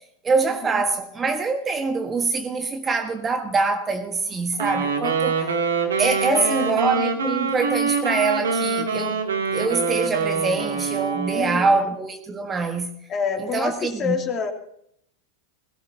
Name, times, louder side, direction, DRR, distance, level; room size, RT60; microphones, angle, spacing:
voice 1, 0.2-5.4 6.0-9.2 9.5-12.9 13.4-14.1, right 4 dB, 20° right, 1.6 m, -24 dB
Wind instrument woodwind instrument, 4.5-11.8, right 5 dB, 65° right, 2.8 m, -25 dB
voice 2, 6.3-7.0 11.3-11.9 13.1-14.5, left 6 dB, 30° left, 2.9 m, -28 dB
22.0 x 17.0 x 2.9 m
figure-of-eight pair, 90°, 0 cm